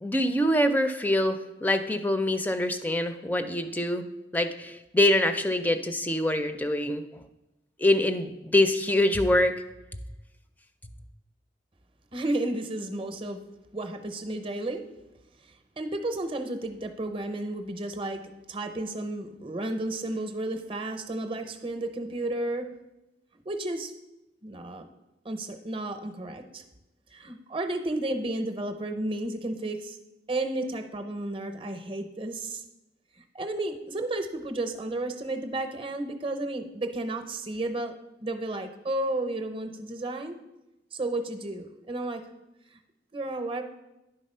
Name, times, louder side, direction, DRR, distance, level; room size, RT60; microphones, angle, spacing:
voice 1, 0.0-4.1 4.3-7.1 7.8-9.6, left 1 dB, 10° left, 8 dB, 0.4 m, -24 dB
voice 2, 12.1-13.4 13.7-14.8 15.8-22.7 23.5-23.9 24.4-24.9 25.2-26.6 27.1-30.0 30.3-32.6 33.3-37.9 38.2-40.4 40.9-42.2 43.1-43.6, right 2 dB, 30° right, 7 dB, 0.7 m, -32 dB
10.0 x 3.9 x 5.4 m, 0.96 s
head